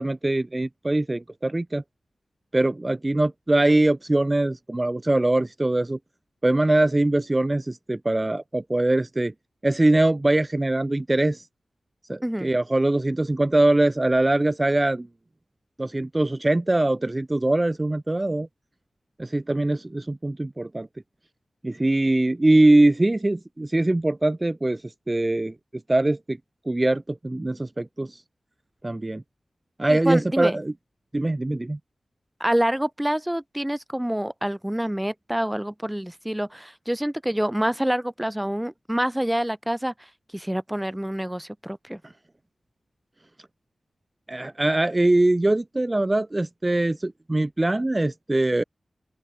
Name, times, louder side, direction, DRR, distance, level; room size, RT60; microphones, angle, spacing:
voice 1, 0.0-1.8 2.5-6.0 6.4-9.3 9.6-11.5 12.1-15.1 15.8-18.5 19.2-20.9 21.6-25.5 25.9-26.4 26.7-28.2 28.8-29.2 29.8-30.7 31.1-31.8 44.3-48.6, right 2 dB, 25° right, 1.3 m, -22 dB
voice 2, 29.9-30.6 32.4-42.0, right 1 dB, 5° right, 1.9 m, -27 dB
open air
wide cardioid pair, 80°, 0 cm